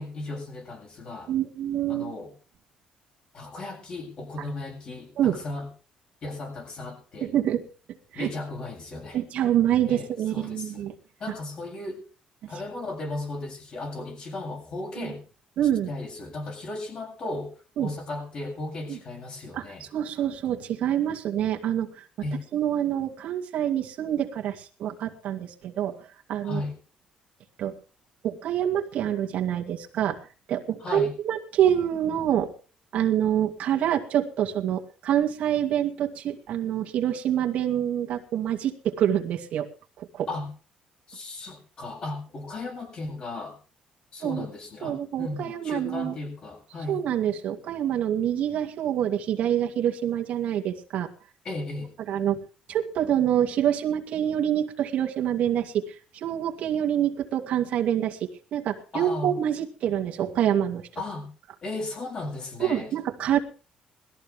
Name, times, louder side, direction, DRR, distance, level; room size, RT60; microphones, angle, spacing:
voice 1, 0.0-1.3 1.9-2.3 3.3-5.7 6.2-7.3 8.1-9.2 9.9-10.9 11.2-12.0 12.5-15.2 15.9-17.5 17.8-19.9 22.2-22.4 26.4-26.7 30.8-31.1 40.3-40.5 41.1-43.6 44.1-47.2 51.4-51.9 58.9-59.4 61.0-61.3 61.6-62.9, left 2 dB, 40° left, 1 dB, 7.8 m, -35 dB
voice 2, 1.3-2.1 5.2-5.4 7.2-7.6 8.1-8.3 9.1-10.9 15.0-15.1 15.6-15.9 17.8-17.9 18.9-19.0 19.5-22.0 22.5-26.0 26.3-26.6 27.6-27.7 28.2-32.5 32.9-39.7 40.0-40.3 44.2-44.5 44.8-46.2 46.9-51.1 52.1-52.4 52.7-60.8 62.6-63.4, right 10 dB, 60° right, 2 dB, 2.2 m, -26 dB
20.5 x 14.0 x 3.5 m, 0.36 s
cardioid pair, 160°, 3 cm